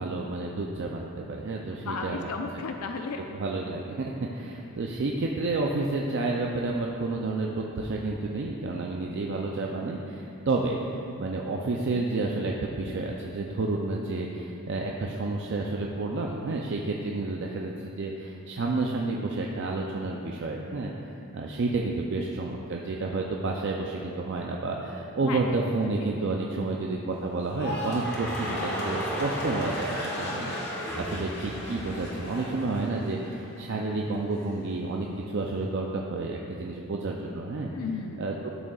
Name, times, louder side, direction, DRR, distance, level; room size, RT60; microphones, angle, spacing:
voice 1, 0.0-2.3 2.6-2.7 3.3-37.7 38.2-38.5, right 3 dB, 55° right, 0 dB, 0.5 m, -30 dB
voice 2, 1.7-3.2 25.2-25.4 37.7-38.3, left 4 dB, 85° left, 4 dB, 0.4 m, -34 dB
sound 1, 27.4-33.7 34.0-34.5, equal, 50° left, 1.5 m, -35 dB
sound 2, 28.0-32.7, equal, 5° left, 0.9 m, -39 dB
12.0 x 6.4 x 2.4 m, 2.9 s
head